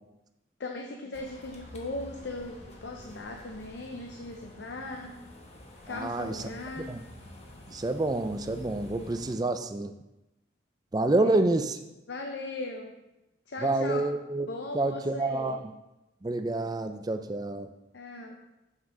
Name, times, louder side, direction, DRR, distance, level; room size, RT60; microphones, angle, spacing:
voice 1, 0.6-5.1 5.8-6.9 11.2-11.6 12.1-13.0 13.5-14.1 14.5-15.6 17.9-18.4, left 2 dB, 70° left, 2 dB, 0.6 m, -38 dB
sound 1, 1.1-9.4, left 1 dB, 35° left, 1.0 m, -49 dB
voice 2, 5.9-7.0 7.7-9.9 10.9-11.8 13.6-14.5 14.7-15.6 16.2-17.7, right 2 dB, 20° right, 7 dB, 0.4 m, -28 dB
7.4 x 6.1 x 3.7 m, 0.96 s
head